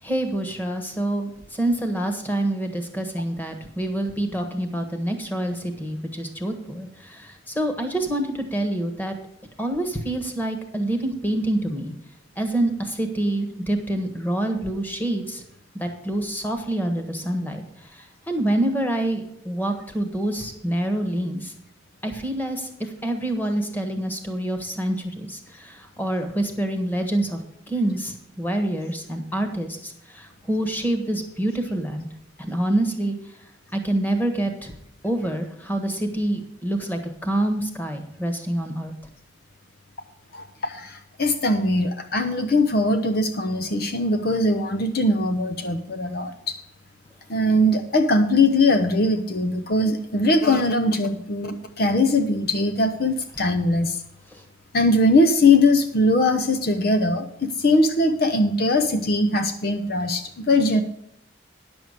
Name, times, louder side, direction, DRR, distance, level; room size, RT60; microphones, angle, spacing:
voice 1, 0.0-9.2 9.6-11.9 12.4-15.4 15.8-17.6 18.0-21.5 22.0-22.7 23.0-27.4 27.7-32.1 32.4-33.2 33.7-34.7 35.0-38.9, right 1 dB, 10° left, 6 dB, 1.4 m, -26 dB
voice 2, 40.3-46.6 47.3-54.0 54.7-60.8, left 2 dB, 50° left, 7 dB, 0.7 m, -21 dB
10.5 x 7.0 x 6.5 m, 0.76 s
head